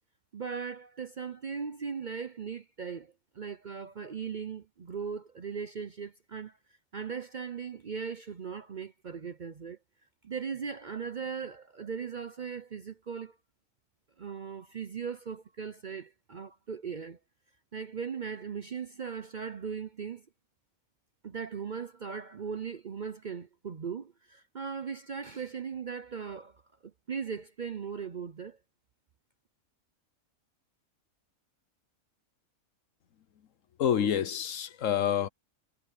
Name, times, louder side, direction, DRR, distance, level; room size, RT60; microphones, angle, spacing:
voice 1, 0.3-6.6 6.9-9.8 10.2-13.4 14.2-17.2 17.7-20.2 21.2-28.6, right 6 dB, 45° right, 0.6 m, -38 dB
voice 2, 33.8-35.3, left 9 dB, 65° left, 1.2 m, -27 dB
omnidirectional pair, 1.5 m